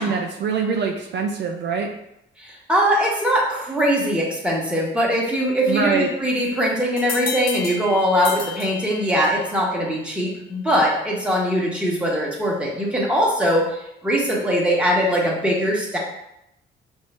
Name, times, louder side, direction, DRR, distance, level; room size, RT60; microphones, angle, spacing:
voice 1, 0.0-1.9 5.7-6.1, right 5 dB, 60° right, 3 dB, 0.5 m, -23 dB
voice 2, 2.4-16.0, equal, 5° right, -4 dB, 1.3 m, -21 dB
sound 1, 7.0-9.5, left 4 dB, 85° left, 0.8 m, -32 dB
5.3 x 2.7 x 3.4 m, 0.81 s
cardioid pair, 90°, 20 cm